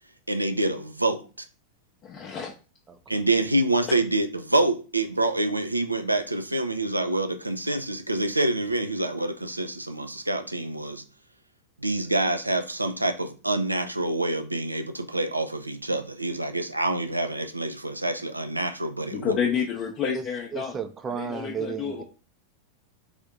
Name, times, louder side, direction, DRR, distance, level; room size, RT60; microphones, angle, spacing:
voice 1, 0.3-1.2 3.1-11.0 11.8-19.4, right 2 dB, 85° right, 0.4 m, -26 dB
voice 2, 2.0-2.5 3.9-4.0 19.1-20.8 21.2-22.0, left 7 dB, 30° left, 0.6 m, -29 dB
voice 3, 2.9-3.2 20.1-20.2 20.5-22.0, right 7 dB, 20° right, 0.5 m, -34 dB
3.4 x 2.6 x 3.6 m
figure-of-eight pair, 90°, 0 cm